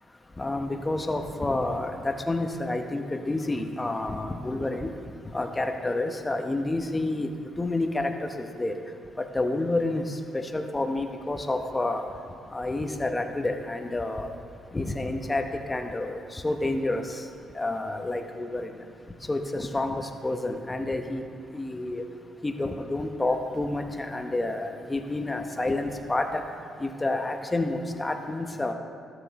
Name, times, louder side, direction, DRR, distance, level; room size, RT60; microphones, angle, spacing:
voice 1, 0.4-4.9 5.3-7.3 7.6-8.1 8.4-8.8 9.3-12.0 12.5-14.3 14.7-17.2 17.5-18.7 19.3-21.2 21.5-22.0 22.4-26.4 26.8-28.7, left 2 dB, 20° left, 5 dB, 0.9 m, -29 dB
13.0 x 7.1 x 4.1 m, 2.3 s
cardioid pair, 90°, 0 cm